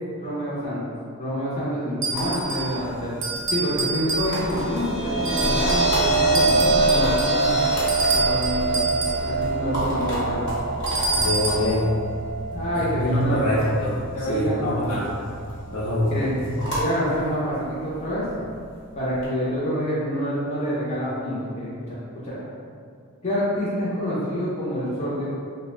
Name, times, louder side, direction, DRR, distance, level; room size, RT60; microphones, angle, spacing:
voice 1, 0.2-0.8 1.2-7.6 8.1-8.8 9.2-10.4 12.5-13.4 14.1-14.9 16.1-16.3 16.8-18.2 19.0-22.0 22.2-22.4 23.2-25.3, equal, 30° left, -9 dB, 0.6 m, -27 dB
sound 1, 2.0-2.8 3.2-4.6 5.2-6.0 6.3-9.3 10.9-11.7, right 4 dB, 55° right, 0.5 m, -27 dB
sound 2, 2.1-19.3, equal, 55° left, 0.9 m, -33 dB
sound 3, 4.3-16.6, right 2 dB, 10° right, 0.6 m, -26 dB
voice 2, 11.1-11.9 12.7-13.9 14.3-15.1 15.7-16.5, left 1 dB, 80° left, -8 dB, 0.8 m, -25 dB
2.5 x 2.1 x 3.1 m, 2.2 s
head